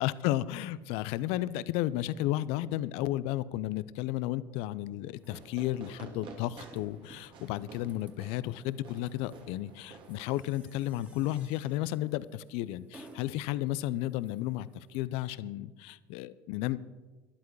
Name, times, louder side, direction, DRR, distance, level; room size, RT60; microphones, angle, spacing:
voice 1, 0.0-16.8, left 15 dB, 65° left, 18 dB, 0.6 m, -33 dB
sound 1, 5.1-15.0, right 1 dB, 15° right, 2.3 m, -58 dB
Fireworks, 5.3-10.8, right 4 dB, 50° right, 2.4 m, -51 dB
12.5 x 11.5 x 4.7 m, 1.2 s
hypercardioid pair, 75°, 11 cm